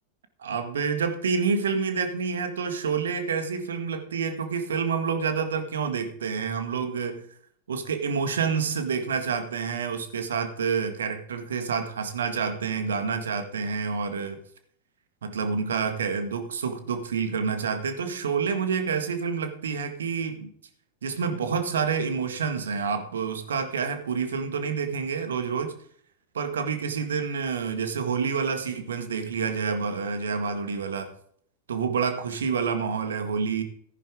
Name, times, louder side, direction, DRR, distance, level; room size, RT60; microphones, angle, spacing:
voice 1, 0.4-7.3 7.7-14.4 15.2-20.5 21.0-25.7 26.3-31.1 31.7-33.6, right 5 dB, 65° right, 7 dB, 1.8 m, -28 dB
14.5 x 10.5 x 3.7 m, 0.63 s
figure-of-eight pair, 90°, 0 cm